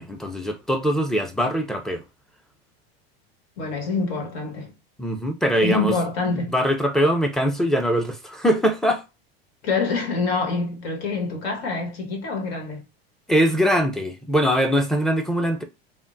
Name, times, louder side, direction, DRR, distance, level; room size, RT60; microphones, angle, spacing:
voice 1, 0.0-2.0 5.0-5.9 6.5-9.0 13.3-15.6, equal, ahead, 0.5 m, -22 dB
voice 2, 3.6-4.7 5.6-6.5 9.6-12.8, left 4 dB, 75° left, 1.5 m, -26 dB
3.5 x 2.1 x 2.6 m
hypercardioid pair, 105°, 31 cm